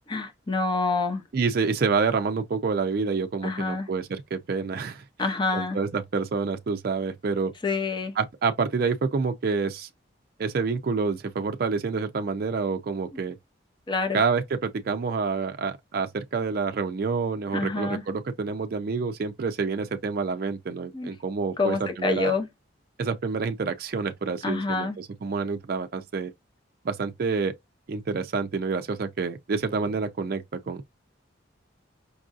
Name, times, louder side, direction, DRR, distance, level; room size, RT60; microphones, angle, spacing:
voice 1, 0.1-1.2 3.4-3.9 5.2-5.8 7.6-8.1 13.9-14.2 17.5-18.0 20.9-21.1 21.6-22.5 24.4-25.0, left 3 dB, 25° left, 0.6 m, -27 dB
voice 2, 1.3-5.0 5.5-7.5 8.2-9.9 10.4-13.3 14.1-22.3 23.0-26.3 26.8-27.5 27.9-30.8, right 4 dB, 50° right, 0.4 m, -28 dB
5.3 x 2.5 x 2.4 m
head